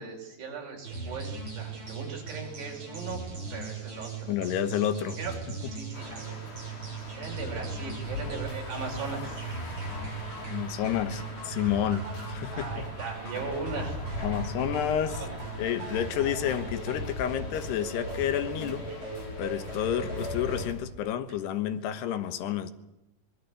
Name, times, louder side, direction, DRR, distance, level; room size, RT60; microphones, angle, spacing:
voice 1, 0.0-3.2 3.5-4.5 5.2-5.4 5.7-6.4 7.1-9.4 12.5-14.4 14.7-15.8, right 4 dB, 70° right, 1 dB, 7.5 m, -39 dB
sound 1, 0.8-20.7, right 4 dB, 25° right, 7.1 m, -39 dB
voice 2, 4.3-5.2 10.5-12.9 14.2-15.2 15.6-18.9 19.4-22.7, left 10 dB, 75° left, 11 dB, 3.2 m, -30 dB
sound 2, 5.9-20.7, left 3 dB, 45° left, 5.9 m, -40 dB
25.0 x 21.5 x 8.4 m, 0.90 s
omnidirectional pair, 5.0 m